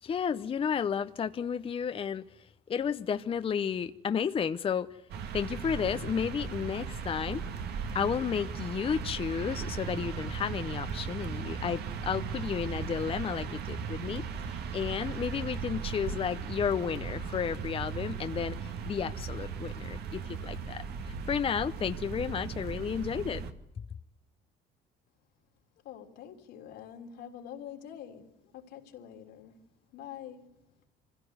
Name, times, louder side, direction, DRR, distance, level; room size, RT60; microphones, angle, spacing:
voice 1, 0.0-4.9 5.3-7.4 7.9-23.4, left 7 dB, 35° left, 0.7 m, -32 dB
sound 1, 5.1-23.5, right 6 dB, 70° right, 2.1 m, -37 dB
voice 2, 25.8-29.6 29.9-30.6, left 9 dB, 85° left, 3.4 m, -46 dB
25.5 x 16.0 x 8.1 m
cardioid pair, 110°, 17 cm